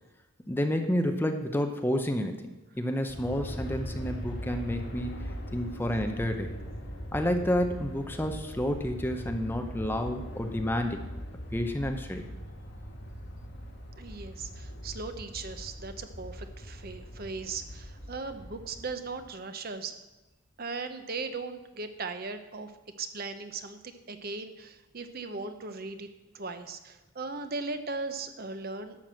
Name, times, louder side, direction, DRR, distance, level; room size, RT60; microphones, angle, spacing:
voice 1, 0.5-2.5 2.8-6.5 7.1-11.0 11.5-12.2, left 1 dB, 10° left, 5 dB, 0.6 m, -30 dB
Aircraft, 3.1-19.3, equal, 50° left, 1.8 m, -40 dB
voice 2, 14.0-19.9 20.6-22.7 23.0-26.1 26.3-29.0, right 4 dB, 45° right, 9 dB, 0.8 m, -38 dB
12.0 x 6.1 x 7.6 m, 1.0 s
head